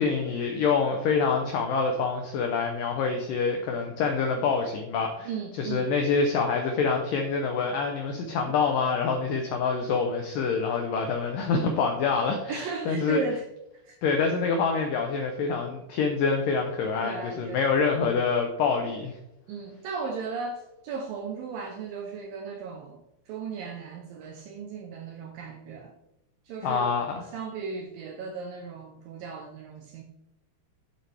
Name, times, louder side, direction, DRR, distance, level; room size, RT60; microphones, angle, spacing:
voice 1, 0.0-5.3 5.6-13.2 14.0-19.1 26.6-27.2, left 5 dB, 85° left, 3 dB, 1.9 m, -26 dB
voice 2, 5.2-5.9 8.5-8.6 12.5-13.5 13.8-14.2 17.0-17.7 19.5-25.9 26.5-26.9 27.3-30.0, right 5 dB, 75° right, 3 dB, 2.1 m, -36 dB
11.0 x 7.8 x 3.4 m, 0.89 s
omnidirectional pair, 5.0 m